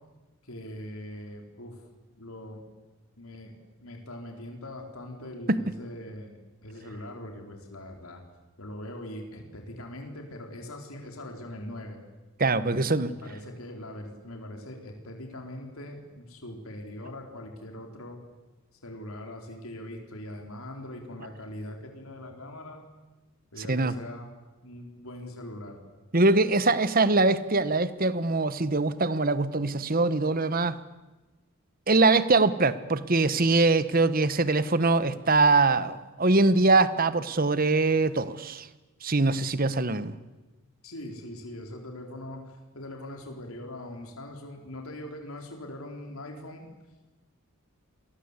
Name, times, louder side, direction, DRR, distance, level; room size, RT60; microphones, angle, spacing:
voice 1, 0.4-1.8 2.1-2.6 3.2-8.2 8.6-12.0 12.6-18.2 18.8-22.8 23.5-24.3 24.6-25.8 40.8-46.7, left 1 dB, 75° left, 3 dB, 4.4 m, -41 dB
voice 2, 12.4-13.1 23.6-24.0 26.1-30.8 31.9-38.7 39.0-40.1, right 3 dB, 40° right, 14 dB, 1.2 m, -23 dB
29.0 x 23.0 x 8.4 m, 1.2 s
head